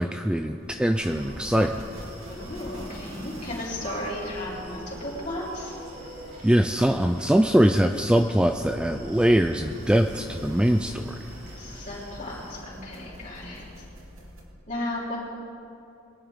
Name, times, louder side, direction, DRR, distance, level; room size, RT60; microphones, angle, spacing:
voice 1, 0.0-1.8 6.4-11.2, equal, 5° right, 6 dB, 0.3 m, -22 dB
sound 1, 0.6-14.4, equal, 90° right, 2.3 m, -46 dB
Screaming, 0.9-12.6, right 1 dB, 55° right, 3.9 m, -44 dB
voice 2, 2.3-5.7 11.6-13.6 14.7-15.2, left 1 dB, 40° left, -6 dB, 3.9 m, -34 dB
22.5 x 11.0 x 3.7 m, 2.6 s
head